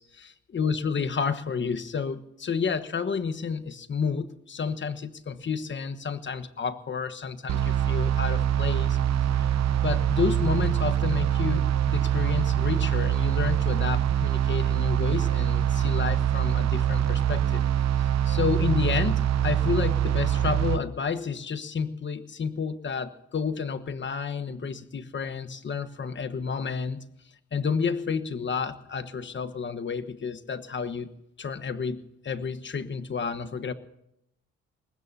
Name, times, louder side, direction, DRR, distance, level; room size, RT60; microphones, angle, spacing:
voice 1, 0.0-9.5 9.8-17.6 18.0-27.0 27.5-31.1 31.4-33.7, left 5 dB, 40° left, 10 dB, 1.3 m, -30 dB
sound 1, 7.5-20.8, right 10 dB, 60° right, 0.9 m, -24 dB
23.5 x 20.0 x 2.8 m, 0.80 s
cardioid pair, 90°, 30 cm